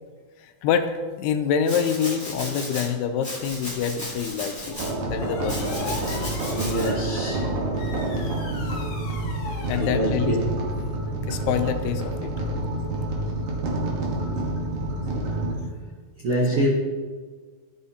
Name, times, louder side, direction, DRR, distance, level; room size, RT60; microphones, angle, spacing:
voice 1, 0.4-4.8 5.1-6.0 6.7-6.8 9.7-10.4 11.3-12.3 16.5-16.6, left 7 dB, 90° left, 8 dB, 2.6 m, -26 dB
Domestic sounds home sounds, 1.6-2.9 3.2-4.9 5.5-6.9, left 1 dB, 5° left, 1.0 m, -35 dB
sound 1, 3.4-12.0, left 3 dB, 75° left, 2.5 m, -41 dB
sound 2, 4.7-15.5, right 1 dB, 65° right, 2.5 m, -28 dB
voice 2, 6.5-7.4 9.7-10.4 16.2-16.7, right 1 dB, 80° right, -5 dB, 1.2 m, -25 dB
13.0 x 5.7 x 2.8 m, 1.5 s
omnidirectional pair, 4.5 m